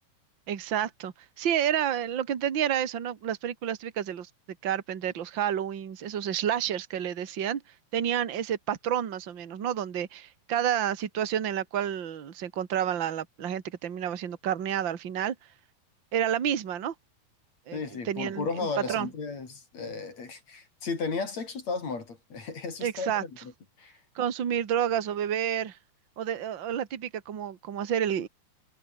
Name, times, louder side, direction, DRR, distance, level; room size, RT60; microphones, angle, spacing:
voice 1, 0.5-4.3 4.6-7.6 7.9-15.3 16.1-16.9 17.7-17.8 18.0-19.1 22.8-23.2 24.1-25.8 26.2-28.3, right 9 dB, 50° right, 1.4 m, -29 dB
voice 2, 17.7-23.5 23.8-24.0, left 4 dB, 40° left, 4.6 m, -34 dB
omnidirectional pair, 5.2 m